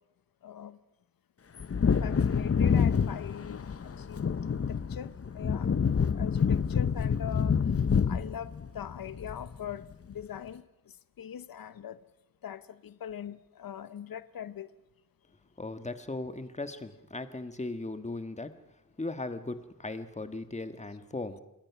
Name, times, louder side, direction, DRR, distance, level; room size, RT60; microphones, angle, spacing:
voice 1, 0.4-0.8 2.0-4.2 4.7-5.7 6.1-7.6 8.1-10.6 11.2-12.0 12.4-14.7, left 9 dB, 90° left, 0.8 m, -41 dB
Wind / Thunder, 1.6-9.8 10.1-10.2, left 6 dB, 45° left, 0.8 m, -27 dB
voice 2, 15.6-18.5 19.0-21.4, left 2 dB, 20° left, 1.5 m, -37 dB
27.5 x 21.0 x 6.0 m
wide cardioid pair, 100°, 34 cm